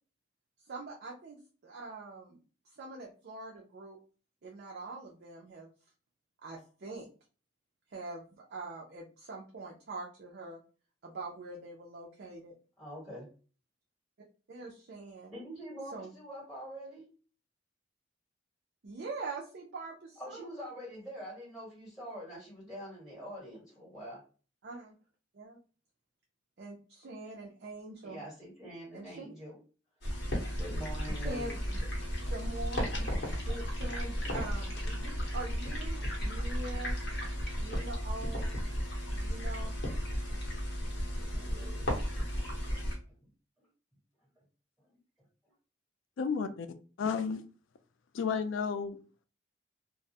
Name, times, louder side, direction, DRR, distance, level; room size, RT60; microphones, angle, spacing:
voice 1, 0.6-1.4 1.6-2.4 2.7-4.0 4.4-5.7 6.4-7.1 7.9-10.6 11.0-12.5 14.5-15.3 15.9-16.1 18.8-20.5 24.6-24.9 25.3-25.6 26.6-28.2 28.9-29.3 31.1-31.8 32.3-33.1 33.5-37.0 37.6-38.6 39.1-39.7, right 3 dB, 55° right, -2 dB, 0.5 m, -44 dB
voice 2, 12.8-13.3 15.3-17.1 20.2-24.2 28.0-29.5 30.6-31.6 41.1-42.0 43.6-43.7, equal, 5° right, -5 dB, 1.4 m, -45 dB
sound 1, 30.0-43.0, equal, 65° left, 0.8 m, -34 dB
voice 3, 46.2-46.7 47.0-47.4 48.1-49.0, left 6 dB, 80° left, 10 dB, 0.3 m, -32 dB
2.3 x 2.0 x 2.7 m, 0.38 s
head